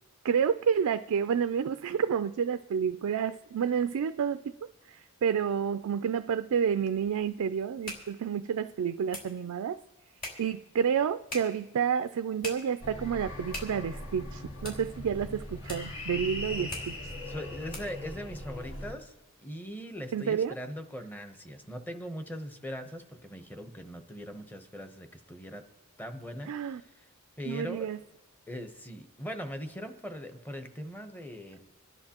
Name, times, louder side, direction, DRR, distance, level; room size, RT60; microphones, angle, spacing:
voice 1, 0.2-9.8 10.4-16.9 20.1-20.5 26.5-26.8 27.5-28.0, right 7 dB, 75° right, 10 dB, 0.4 m, -29 dB
sound 1, 7.6-18.1, left 1 dB, 40° left, 4.1 m, -46 dB
sound 2, 12.8-18.9, left 1 dB, 65° left, 1.8 m, -40 dB
voice 2, 16.5-16.9 17.3-25.6 26.0-27.1 27.4-27.9 28.5-31.6, equal, 10° left, 7 dB, 0.8 m, -41 dB
27.5 x 11.0 x 2.9 m, 1.1 s
head